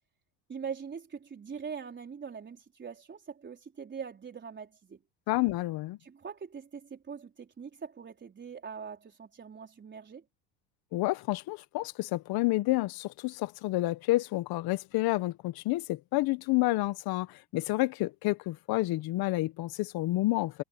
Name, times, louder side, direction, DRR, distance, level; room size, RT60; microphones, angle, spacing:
voice 1, 0.5-5.0 6.0-10.2, right 6 dB, 25° right, 4.5 m, -42 dB
voice 2, 5.3-6.0 10.9-20.6, left 19 dB, 60° left, 1.5 m, -29 dB
supercardioid pair, 110°, 42 cm